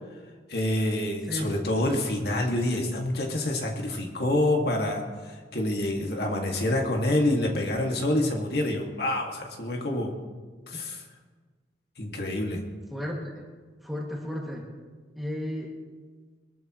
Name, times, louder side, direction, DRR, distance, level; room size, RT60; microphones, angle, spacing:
voice 1, 0.5-10.1 10.7-11.0 12.0-12.6, left 1 dB, 60° left, 1 dB, 2.1 m, -27 dB
voice 2, 12.9-13.4 13.8-14.6 15.2-15.7, left 1 dB, ahead, -3 dB, 2.2 m, -33 dB
22.5 x 14.0 x 3.1 m, 1.4 s
head